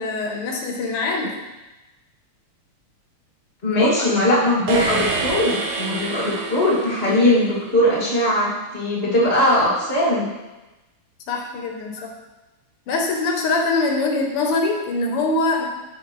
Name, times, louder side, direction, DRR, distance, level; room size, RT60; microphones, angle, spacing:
voice 1, 0.0-1.3 3.8-4.1 11.3-12.1 12.9-15.7, left 3 dB, 85° left, 1 dB, 1.9 m, -23 dB
voice 2, 3.6-10.3, left 1 dB, 25° left, -6 dB, 2.2 m, -20 dB
sound 1, 4.7-7.5, right 3 dB, 85° right, 0.6 m, -27 dB
7.5 x 7.0 x 3.1 m, 1.1 s
omnidirectional pair, 2.4 m